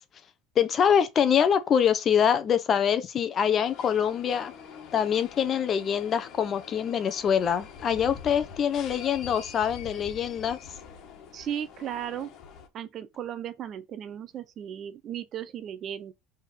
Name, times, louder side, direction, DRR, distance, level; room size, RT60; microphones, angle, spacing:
voice 1, 0.6-4.5 4.9-10.6, left 8 dB, 30° left, 0.8 m, -24 dB
sound 1, 3.6-12.7, left 7 dB, 45° left, 1.5 m, -45 dB
voice 2, 11.3-12.3 12.7-16.1, right 10 dB, 35° right, 0.7 m, -36 dB
5.2 x 3.7 x 5.7 m
cardioid pair, 150°, 0 cm